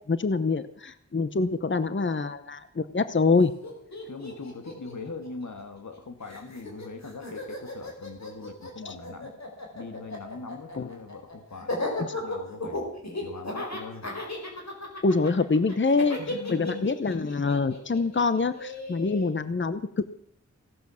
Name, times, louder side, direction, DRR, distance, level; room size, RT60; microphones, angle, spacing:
voice 1, 0.1-3.5 8.8-8.9 10.8-10.9 15.0-16.2 16.5-20.2, left 4 dB, 40° left, 12 dB, 0.9 m, -25 dB
Laughter, 3.3-3.4 3.6-6.0 6.3-19.3, left 2 dB, 65° left, 4.4 m, -36 dB
voice 2, 4.1-9.3 9.7-12.9 13.2-14.1 16.2-16.9, left 4 dB, 90° left, 7 dB, 1.9 m, -41 dB
17.0 x 11.5 x 7.1 m, 0.67 s
wide cardioid pair, 75°, 29 cm